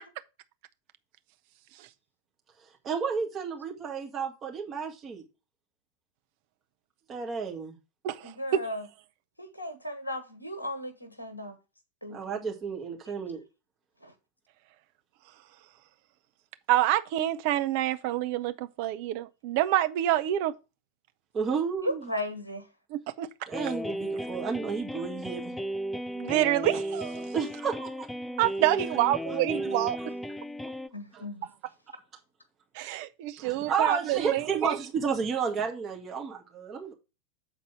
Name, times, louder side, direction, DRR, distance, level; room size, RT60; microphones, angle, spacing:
voice 1, 2.8-5.2 7.1-7.8 12.1-13.4 21.3-22.0 23.5-25.5 27.3-28.1 31.1-31.2 33.4-36.9, right 6 dB, 25° right, 2.0 m, -31 dB
voice 2, 8.2-8.9 9.4-11.6 12.0-12.5 14.0-14.1 21.8-22.7 30.9-31.5, left 1 dB, 85° left, 1.2 m, -36 dB
voice 3, 16.7-20.5 22.9-23.3 26.1-27.3 28.4-30.0 32.7-34.8, right 14 dB, 45° right, 0.6 m, -27 dB
sound 1, 23.5-30.9, equal, 5° left, 0.4 m, -35 dB
7.6 x 4.1 x 6.2 m
figure-of-eight pair, 90°, 0 cm